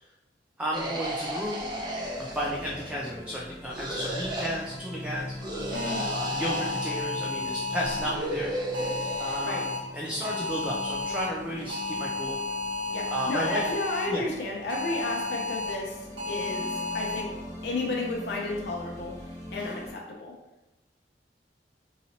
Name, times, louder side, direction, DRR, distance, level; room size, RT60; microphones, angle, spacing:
voice 1, 0.6-1.6 2.2-5.3 6.1-8.5 9.2-12.4 13.1-13.7 14.1-14.2, equal, 5° right, -4 dB, 0.4 m, -33 dB
sound 1, 0.7-3.0 3.7-4.6 5.4-7.0 7.8-9.4, right 1 dB, 25° right, 0.7 m, -34 dB
sound 2, 1.6-19.9, left 1 dB, 20° left, 1.1 m, -42 dB
voice 2, 5.7-6.1 9.4-9.7 12.9-16.0 16.3-17.3 17.6-19.2 19.5-20.3, left 2 dB, 70° left, -2 dB, 0.5 m, -32 dB
sound 3, 5.7-8.1 8.7-9.8 10.2-11.3 11.7-14.1 14.7-15.7 16.2-17.2, left 3 dB, 80° right, 0.9 m, -32 dB
3.9 x 2.8 x 2.8 m, 1.0 s
head